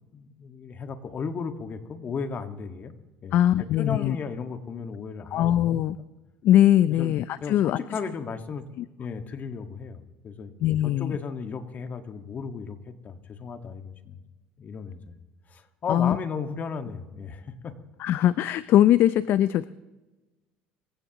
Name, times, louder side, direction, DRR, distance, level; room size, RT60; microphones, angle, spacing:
voice 1, 0.1-2.9 3.2-5.9 6.9-7.1 7.4-8.7 9.0-10.5 10.8-14.2 14.6-15.1 15.5-17.7, left 5 dB, 40° left, 7 dB, 1.7 m, -35 dB
voice 2, 3.3-4.2 5.3-6.0 6.4-7.8 8.8-8.9 10.6-11.1 15.9-16.2 18.0-19.6, left 12 dB, 60° left, 15 dB, 0.5 m, -21 dB
25.5 x 15.5 x 3.0 m, 1.1 s
supercardioid pair, 80°, 4 cm